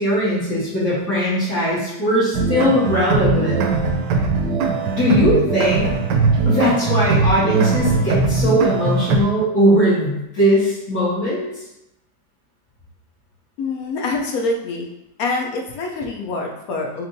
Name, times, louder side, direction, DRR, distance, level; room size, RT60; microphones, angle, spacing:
voice 1, 0.0-3.6 4.9-5.9 6.4-11.5, equal, 50° left, -11 dB, 1.7 m, -19 dB
sound 1, 2.3-9.2, right 4 dB, 75° right, 1.2 m, -20 dB
voice 2, 13.6-14.9 15.2-17.1, left 3 dB, 65° left, 0 dB, 0.9 m, -25 dB
5.9 x 2.6 x 2.6 m, 0.87 s
omnidirectional pair, 2.0 m